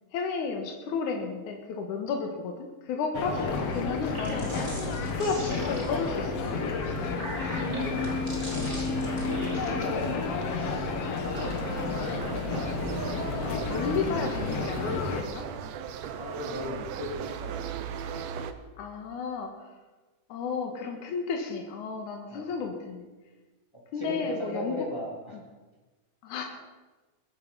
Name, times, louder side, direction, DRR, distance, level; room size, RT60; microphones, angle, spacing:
voice 1, 0.1-4.6 5.2-6.5 12.1-12.3 13.5-15.5 18.8-19.5 20.3-23.1 23.9-24.8 26.2-26.4, left 5 dB, 75° left, 2 dB, 3.0 m, -33 dB
sound 1, 3.1-15.2, left 3 dB, 55° left, 2.5 m, -31 dB
sound 2, 4.0-6.2 6.8-9.8, right 1 dB, 20° right, 2.9 m, -41 dB
voice 2, 7.7-8.2 8.5-8.8 9.3-12.1 16.2-17.7 22.3-22.5 23.9-25.4, left 1 dB, 10° left, -2 dB, 2.9 m, -38 dB
sound 3, 11.2-18.5, right 8 dB, 65° right, 1.9 m, -37 dB
22.0 x 10.5 x 5.6 m, 1.3 s
omnidirectional pair, 3.5 m